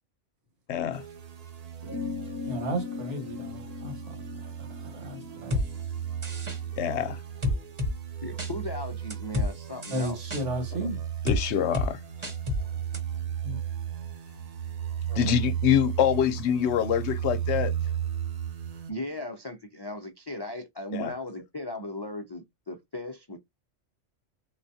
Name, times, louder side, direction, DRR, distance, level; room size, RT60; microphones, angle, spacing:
voice 1, 0.7-1.0 6.8-7.2 10.7-10.9 11.2-12.0 15.1-17.7 20.9-21.1, left 9 dB, 70° left, 0.8 m, -25 dB
sound 1, 0.9-18.9, right 9 dB, 45° right, 0.6 m, -35 dB
sound 2, 1.8-6.7, left 6 dB, 15° left, 0.9 m, -39 dB
voice 2, 2.5-3.9 4.9-5.6 9.9-11.0 13.4-13.6 15.1-15.2, right 1 dB, 75° right, 1.6 m, -33 dB
sound 3, 5.5-5.7 6.2-6.6 7.4-7.9 8.4-8.5 9.1-9.5 9.8-10.4 11.3-11.4 11.7-11.9 12.2-12.6 12.9-13.0, left 2 dB, 25° right, 0.9 m, -28 dB
voice 3, 8.2-10.6 18.9-23.4, left 1 dB, 40° left, 0.3 m, -37 dB
3.7 x 2.1 x 2.7 m
omnidirectional pair, 1.2 m